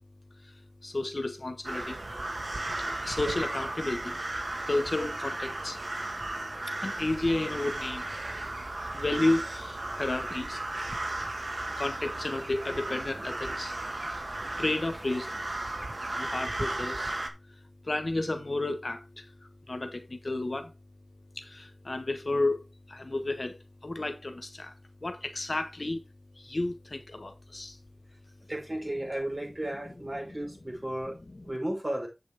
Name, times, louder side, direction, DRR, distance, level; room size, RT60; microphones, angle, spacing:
voice 1, 0.8-2.0 2.8-4.2 4.7-5.8 6.7-8.1 8.9-10.6 11.8-13.7 14.6-15.5 16.1-17.1 17.8-20.7 21.3-24.7 25.0-26.0 26.3-27.8 31.3-31.4, left 2 dB, 65° left, 1.2 m, -32 dB
sound 1, 1.6-17.3, right 2 dB, 70° right, 1.4 m, -35 dB
voice 2, 28.5-31.2 31.4-32.1, right 1 dB, 35° right, 5.2 m, -34 dB
8.3 x 7.7 x 3.4 m
wide cardioid pair, 45°, 0 cm